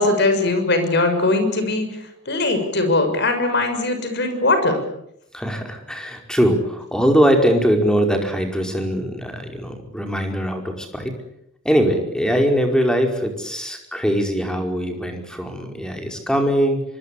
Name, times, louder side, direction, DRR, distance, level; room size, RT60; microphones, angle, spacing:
voice 1, 0.0-2.0 2.2-4.8, left 2 dB, 55° left, 7 dB, 6.6 m, -20 dB
voice 2, 5.3-11.1 11.6-16.8, equal, 5° left, 4 dB, 5.0 m, -21 dB
25.0 x 24.0 x 8.5 m, 0.77 s
head